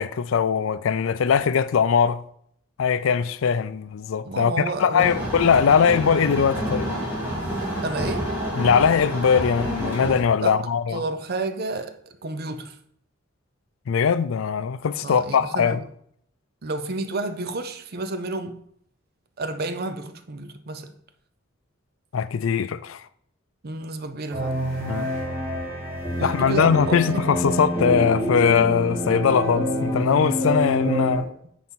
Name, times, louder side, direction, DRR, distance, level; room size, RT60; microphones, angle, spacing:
voice 1, 0.0-2.2 2.8-6.9 8.6-11.0 13.9-15.8 22.1-23.0 24.8-25.1 26.2-31.3, left 6 dB, 80° left, 0.4 m, -21 dB
voice 2, 4.2-5.2 7.8-8.4 10.4-10.6 10.9-12.8 15.0-15.9 16.6-18.6 19.4-20.9 23.6-24.7 26.2-27.4, right 2 dB, 50° right, 0.7 m, -31 dB
sound 1, 5.0-10.2, equal, 10° right, 2.6 m, -28 dB
sound 2, 24.3-31.2, equal, 5° left, 2.9 m, -27 dB
9.5 x 4.2 x 4.5 m
head